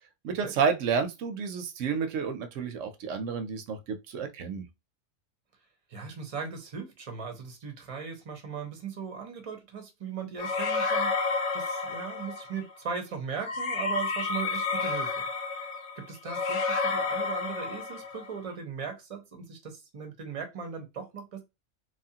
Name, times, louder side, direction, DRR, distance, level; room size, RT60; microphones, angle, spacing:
voice 1, 0.2-4.7, right 6 dB, 75° right, 0.9 m, -30 dB
voice 2, 5.9-15.2 16.0-21.4, right 6 dB, 35° right, 0.6 m, -38 dB
sound 1, 10.4-12.6 13.4-18.3, left 4 dB, 70° left, 0.9 m, -30 dB
3.0 x 2.4 x 2.7 m
omnidirectional pair, 1.3 m